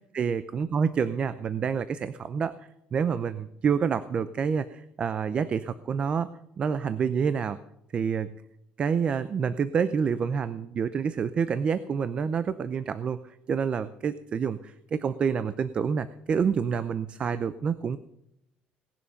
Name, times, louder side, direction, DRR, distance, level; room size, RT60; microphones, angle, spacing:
voice 1, 0.1-2.5 2.9-6.3 6.6-7.6 7.9-8.3 8.8-18.0, right 6 dB, 30° right, 14 dB, 0.6 m, -28 dB
18.5 x 11.0 x 5.2 m, 0.81 s
cardioid pair, 160°, 4 cm